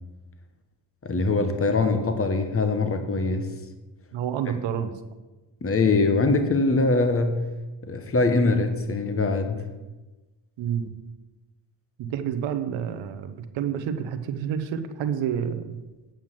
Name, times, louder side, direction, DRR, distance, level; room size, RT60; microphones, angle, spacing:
voice 1, 1.0-3.5 5.6-7.4 7.8-9.7, left 3 dB, 30° left, 7 dB, 1.3 m, -23 dB
voice 2, 4.1-4.9 10.6-10.9 12.0-15.8, right 8 dB, 85° right, 9 dB, 1.0 m, -29 dB
9.1 x 5.8 x 7.5 m, 1.2 s
supercardioid pair, 60°, 44 cm